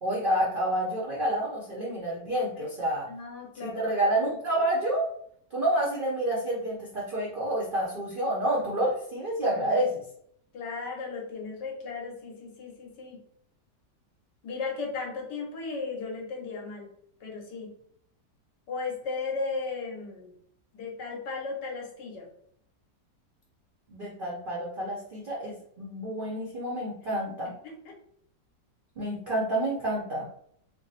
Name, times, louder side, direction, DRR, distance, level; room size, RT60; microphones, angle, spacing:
voice 1, 0.0-3.1 3.6-5.1 5.5-10.0 23.9-27.5 29.0-30.3, right 1 dB, 60° right, -4 dB, 0.5 m, -29 dB
voice 2, 3.1-3.8 9.4-9.8 10.5-13.2 14.4-16.9 17.2-17.7 18.7-20.4 20.7-22.3 27.1-27.9, left 4 dB, 75° left, 0 dB, 1.6 m, -36 dB
3.4 x 2.0 x 4.0 m, 0.66 s
omnidirectional pair, 1.9 m